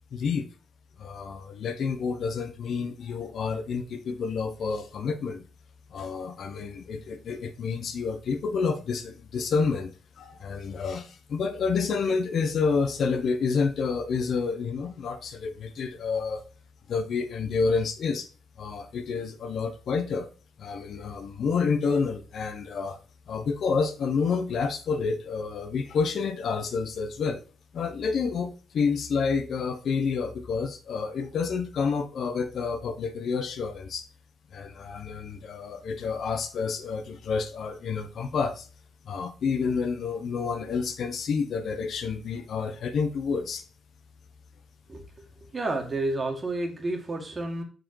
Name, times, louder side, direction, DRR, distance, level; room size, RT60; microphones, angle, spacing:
voice 1, 0.1-0.5 1.0-5.5 5.9-9.9 10.2-16.4 16.9-18.3 18.6-20.3 20.6-23.0 23.3-27.4 27.7-34.1 34.5-38.7 39.0-43.6, left 5 dB, 60° left, 8 dB, 1.0 m, -29 dB
voice 2, 45.5-47.6, right 2 dB, 30° right, 2 dB, 2.1 m, -30 dB
6.3 x 4.9 x 4.7 m, 0.37 s
cardioid pair, 90°, 0 cm